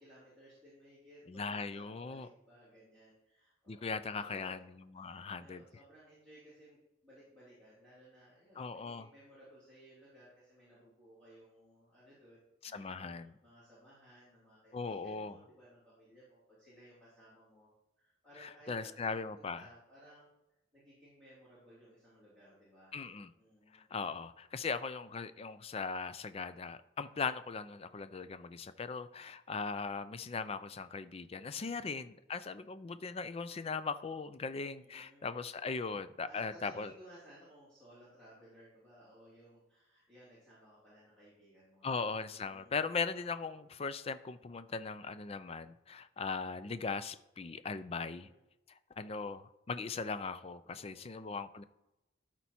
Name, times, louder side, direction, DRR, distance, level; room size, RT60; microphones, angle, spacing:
voice 1, 0.0-4.6 5.0-17.7 18.0-20.3 20.7-23.1 23.3-24.0 31.5-32.0 34.7-35.4 36.2-41.9 42.3-43.0 48.0-48.4 50.6-51.3, right 1 dB, 5° left, -12 dB, 3.1 m, -59 dB
voice 2, 1.3-2.3 3.7-5.6 8.6-9.1 12.6-13.3 14.7-15.3 18.4-19.6 22.9-23.3 23.7-36.9 41.8-48.3 49.0-51.6, left 4 dB, 30° left, 13 dB, 0.4 m, -39 dB
12.5 x 4.5 x 4.3 m, 0.95 s
head